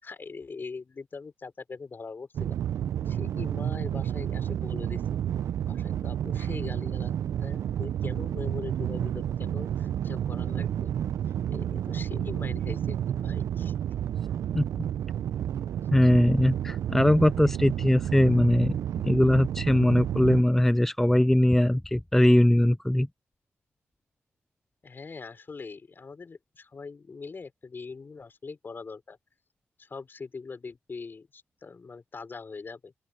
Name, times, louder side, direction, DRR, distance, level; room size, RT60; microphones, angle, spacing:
voice 1, 0.0-2.6 3.1-5.0 5.6-10.9 11.5-13.7 24.8-29.2 29.8-32.9, left 4 dB, 45° left, 5.3 m, -42 dB
sound 1, 2.3-20.4, right 10 dB, 80° right, 0.6 m, -30 dB
voice 2, 15.9-18.8 19.0-23.1, left 1 dB, 5° left, 0.4 m, -21 dB
open air
cardioid pair, 65°, 5 cm